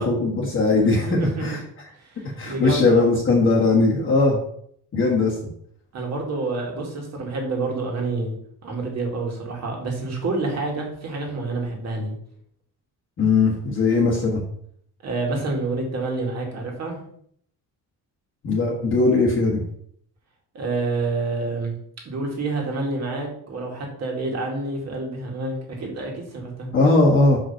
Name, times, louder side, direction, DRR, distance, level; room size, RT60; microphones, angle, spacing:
voice 1, 0.0-1.6 2.4-4.4 4.9-5.3 13.2-14.4 18.4-19.6 26.7-27.4, left 3 dB, 30° left, -6 dB, 1.5 m, -19 dB
voice 2, 0.9-1.5 2.0-3.1 5.9-8.4 8.6-12.1 15.0-17.0 20.5-21.8 22.1-26.7, right 3 dB, 40° right, 0 dB, 2.1 m, -28 dB
5.9 x 5.2 x 5.7 m, 0.66 s
cardioid pair, 180°, 39 cm